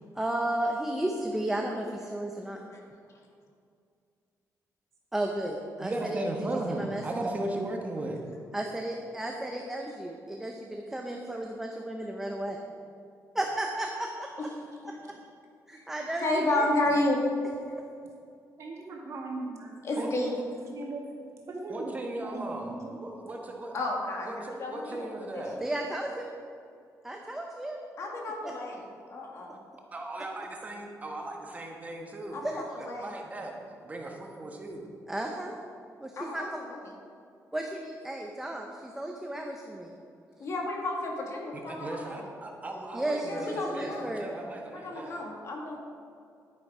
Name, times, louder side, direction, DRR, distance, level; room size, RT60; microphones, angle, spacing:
voice 1, 0.1-2.6 5.1-6.2 6.7-7.0 8.5-12.6 13.3-14.3 14.8-14.9 15.7-16.7 25.6-26.3 27.0-27.8 32.4-32.6 35.1-35.6 36.0-36.5 37.5-39.9 42.9-44.2, right 1 dB, 5° right, 1 dB, 0.7 m, -33 dB
voice 2, 5.8-8.2 20.0-20.3 21.7-23.8 24.2-25.6 29.9-32.4 33.0-33.6 33.8-34.9 41.5-45.2, right 2 dB, 25° right, 1 dB, 1.2 m, -36 dB
voice 3, 16.2-17.2 19.8-20.4 23.7-25.7 28.0-28.8 29.1-29.6 32.3-33.1 36.2-36.8 40.4-42.3 43.2-44.2 44.7-45.8, left 1 dB, 50° left, 0 dB, 2.0 m, -32 dB
voice 4, 18.6-20.4 20.7-21.1 21.5-21.9 22.2-23.0, right 2 dB, 50° right, -1 dB, 2.1 m, -39 dB
11.0 x 9.6 x 4.9 m, 2.4 s
wide cardioid pair, 165°, 6 cm